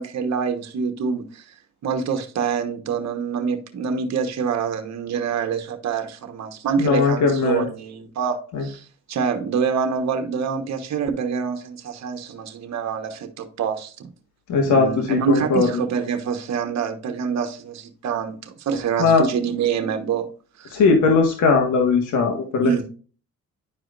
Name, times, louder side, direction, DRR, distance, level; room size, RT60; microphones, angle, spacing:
voice 1, 0.0-1.4 1.8-13.9 14.7-20.3 20.6-20.7 22.6-22.8, right 6 dB, 60° right, 1.3 m, -26 dB
voice 2, 6.8-7.7 8.5-8.6 14.5-15.7 19.0-19.3 20.7-22.8, left 4 dB, 80° left, 1.6 m, -19 dB
10.5 x 4.9 x 2.5 m
cardioid pair, 90°, 30 cm